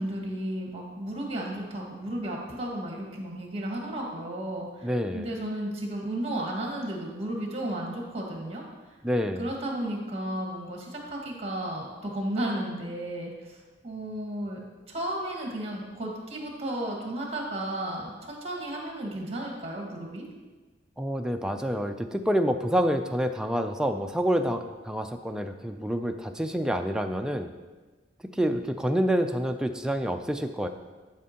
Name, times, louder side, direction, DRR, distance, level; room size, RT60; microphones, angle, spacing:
voice 1, 0.0-8.6 9.4-14.6 14.9-20.3, right 1 dB, 35° right, -1 dB, 1.5 m, -33 dB
voice 2, 4.8-5.3 9.0-9.5 21.0-27.5 28.3-30.7, equal, 5° right, 5 dB, 0.3 m, -27 dB
11.0 x 5.1 x 2.8 m, 1.3 s
head